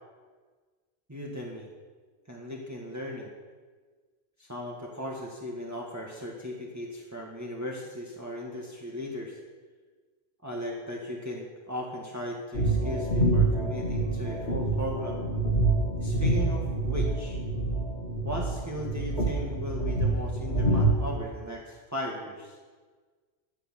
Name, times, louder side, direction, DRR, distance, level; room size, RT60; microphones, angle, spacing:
voice 1, 1.1-1.7 2.3-3.3 4.4-9.4 10.4-15.2 16.0-17.4 18.2-22.6, left 1 dB, 15° right, -2 dB, 1.8 m, -37 dB
sound 1, 12.5-21.2, right 2 dB, 75° left, 2.6 m, -27 dB
12.5 x 10.0 x 9.0 m, 1.4 s
omnidirectional pair, 1.1 m